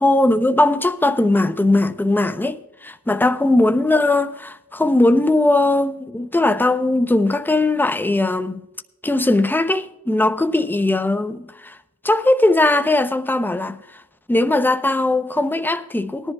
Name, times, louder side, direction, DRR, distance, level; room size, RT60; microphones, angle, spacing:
voice 1, 0.0-8.6 9.0-11.8 12.0-14.0 14.3-16.3, left 2 dB, 5° left, 0.8 m, -19 dB
19.0 x 11.0 x 2.4 m
cardioid pair, 65°, 39 cm